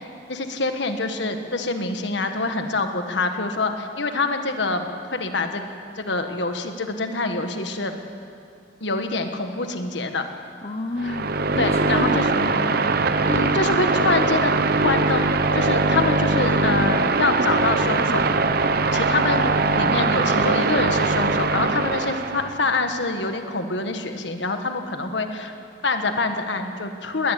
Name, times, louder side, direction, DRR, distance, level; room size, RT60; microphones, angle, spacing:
voice 1, 0.3-5.6 6.0-8.0 8.8-10.2 11.0-11.2 11.6-12.2 13.3-14.5 14.8-18.3 18.9-19.5 19.7-25.5 25.8-27.3, left 3 dB, 65° left, 6 dB, 1.6 m, -25 dB
voice 2, 10.6-12.8 19.4-19.5, left 2 dB, 35° left, 5 dB, 0.9 m, -30 dB
sound 1, 11.0-22.5, right 3 dB, 55° right, 0.9 m, -21 dB
20.5 x 20.0 x 8.3 m, 2.5 s
head